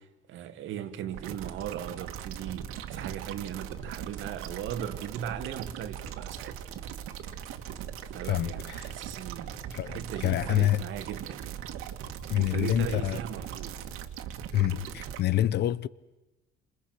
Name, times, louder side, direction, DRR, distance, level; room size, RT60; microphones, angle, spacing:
voice 1, 0.0-6.6 8.0-9.5 9.8-11.6 12.3-13.8, right 9 dB, 65° right, 2.4 m, -38 dB
sound 1, 1.1-15.2, right 9 dB, 90° right, 2.3 m, -40 dB
voice 2, 9.7-10.8 12.3-13.2 14.5-15.9, left 13 dB, 55° left, 0.9 m, -27 dB
29.5 x 28.0 x 6.2 m
cardioid pair, 155°, 21 cm